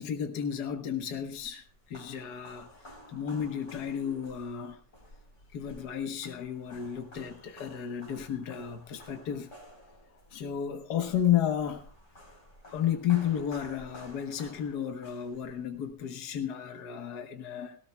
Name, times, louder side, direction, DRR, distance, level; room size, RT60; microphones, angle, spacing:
voice 1, 0.0-4.8 5.5-9.5 10.3-11.9 12.7-17.8, left 9 dB, 75° left, 1.7 m, -32 dB
sound 1, 1.0-15.9, equal, 45° left, 4.2 m, -53 dB
19.0 x 17.5 x 2.2 m
omnidirectional pair, 1.8 m